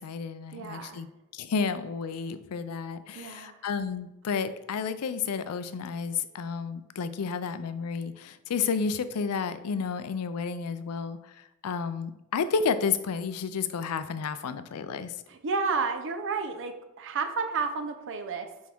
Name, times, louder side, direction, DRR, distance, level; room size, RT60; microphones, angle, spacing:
voice 1, 0.0-11.2 11.6-15.1, left 5 dB, 80° left, 12 dB, 0.4 m, -31 dB
voice 2, 0.5-1.0 3.1-3.6 15.3-18.5, right 4 dB, 60° right, 7 dB, 0.7 m, -31 dB
6.3 x 3.5 x 4.5 m, 0.93 s
head